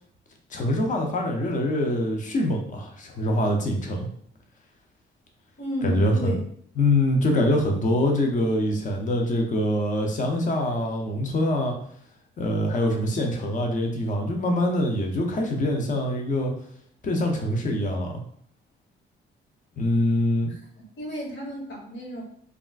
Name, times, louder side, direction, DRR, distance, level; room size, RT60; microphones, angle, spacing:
voice 1, 0.5-4.1 5.8-6.4 6.8-11.7 12.4-16.5 17.0-18.1 19.8-20.5, left 1 dB, 40° left, 2 dB, 0.7 m, -24 dB
voice 2, 5.6-6.4 20.5-20.6 21.0-22.2, right 1 dB, 65° left, -3 dB, 1.4 m, -32 dB
3.5 x 2.4 x 2.4 m, 0.63 s
cardioid pair, 90°, 20 cm